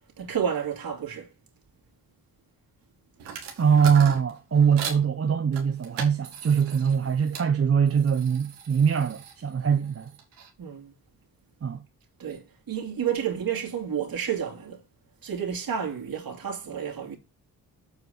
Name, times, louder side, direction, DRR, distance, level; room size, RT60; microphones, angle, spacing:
voice 1, 0.2-1.3 10.6-10.9 12.2-14.8 15.2-17.2, right 8 dB, 55° right, 2.8 m, -30 dB
sound 1, 3.2-5.0 5.5-7.5 7.9-10.5, right 6 dB, 90° right, 2.0 m, -39 dB
voice 2, 3.6-10.1 11.6-11.8, right 7 dB, 35° right, 0.8 m, -22 dB
8.0 x 4.7 x 6.7 m
supercardioid pair, 45°, 41 cm